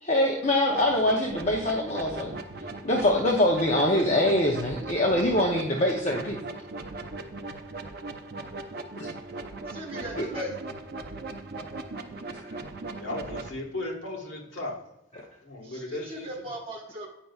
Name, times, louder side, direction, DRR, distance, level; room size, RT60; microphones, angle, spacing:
voice 1, 0.0-2.4 2.8-6.4 9.0-9.1 10.2-10.3 12.3-12.5, left 1 dB, 35° left, 0 dB, 0.6 m, -24 dB
sound 1, 0.7-13.5, right 3 dB, 50° right, 0.5 m, -38 dB
voice 2, 9.7-10.5 15.6-17.1, equal, 30° right, -1 dB, 1.4 m, -38 dB
voice 3, 13.0-14.8 15.4-16.3, left 2 dB, 80° left, 0 dB, 1.5 m, -35 dB
8.8 x 5.3 x 2.3 m, 0.89 s
head